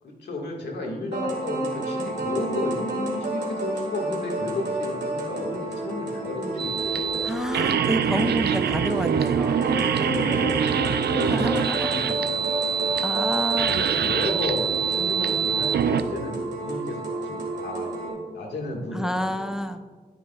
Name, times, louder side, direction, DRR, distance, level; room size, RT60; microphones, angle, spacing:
voice 1, 0.0-7.3 9.9-12.9 13.6-19.7, left 1 dB, 85° left, -1 dB, 1.8 m, -33 dB
sound 1, 1.1-18.1, right 1 dB, 90° right, 1.8 m, -31 dB
sound 2, 6.6-16.0, right 7 dB, 75° right, 0.4 m, -25 dB
voice 2, 7.2-9.7 11.3-11.9 13.0-13.8 18.9-19.8, equal, 5° right, 9 dB, 0.5 m, -29 dB
14.5 x 6.1 x 2.3 m, 1.4 s
cardioid pair, 50°, 17 cm